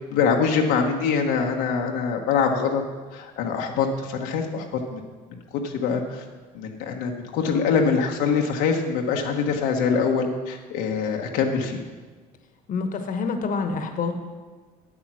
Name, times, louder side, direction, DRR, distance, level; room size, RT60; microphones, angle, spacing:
voice 1, 0.1-2.8 3.1-4.7 4.9-5.0 5.6-6.2 6.5-11.8, left 5 dB, 85° left, 1 dB, 1.1 m, -24 dB
voice 2, 12.7-14.1, left 4 dB, 55° left, 7 dB, 1.2 m, -27 dB
8.7 x 8.6 x 6.1 m, 1.4 s
supercardioid pair, 95°, 17 cm